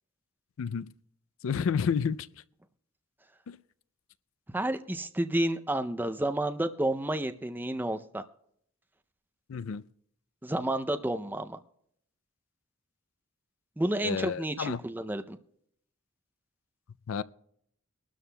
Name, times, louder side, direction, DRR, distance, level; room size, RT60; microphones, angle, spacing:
voice 1, 0.6-0.9 1.4-2.3 3.5-3.6 9.5-9.8 14.0-14.8 17.1-17.2, left 6 dB, 70° left, 0.4 m, -30 dB
voice 2, 4.5-8.2 10.4-11.6 13.8-15.4, right 1 dB, 10° right, 0.5 m, -30 dB
22.5 x 12.5 x 2.2 m
head